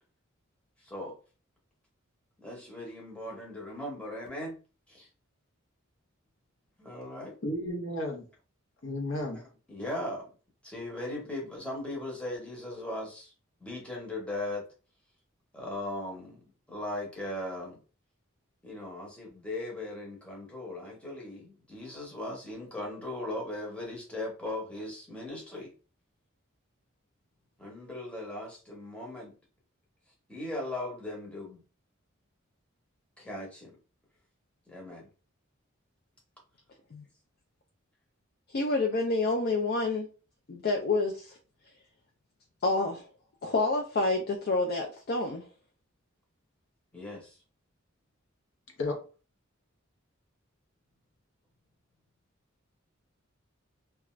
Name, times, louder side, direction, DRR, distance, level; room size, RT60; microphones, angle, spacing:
voice 1, 2.4-4.6 4.9-5.1 6.8-7.3 9.3-9.4 9.7-10.3 10.6-13.3 13.6-14.7 15.5-16.4 16.7-17.8 18.6-25.7 27.6-29.3 30.3-31.6 33.2-33.8 34.7-35.1 46.9-47.4, left 1 dB, 5° left, -3 dB, 0.8 m, -38 dB
voice 2, 7.4-8.3 8.8-9.4 48.8-49.0, left 1 dB, 70° left, 1 dB, 0.7 m, -33 dB
voice 3, 38.5-40.1 40.5-41.4 42.6-43.1 43.4-45.4, left 3 dB, 50° left, 2 dB, 0.4 m, -28 dB
2.4 x 2.3 x 3.0 m, 0.36 s
head